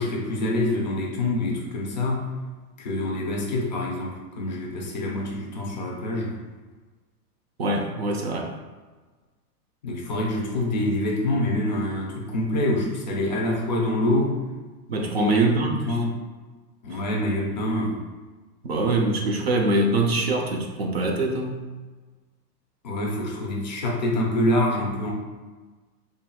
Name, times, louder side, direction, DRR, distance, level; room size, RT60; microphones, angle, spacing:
voice 1, 0.0-2.3 2.8-6.4 9.8-14.4 15.1-16.2 16.8-18.0 22.8-25.1, left 1 dB, 30° left, -2 dB, 0.5 m, -26 dB
voice 2, 7.6-8.6 14.9-16.0 16.9-17.0 18.6-21.6, right 2 dB, 40° right, 2 dB, 0.4 m, -24 dB
4.5 x 3.2 x 2.3 m, 1.3 s
hypercardioid pair, 165°, 48 cm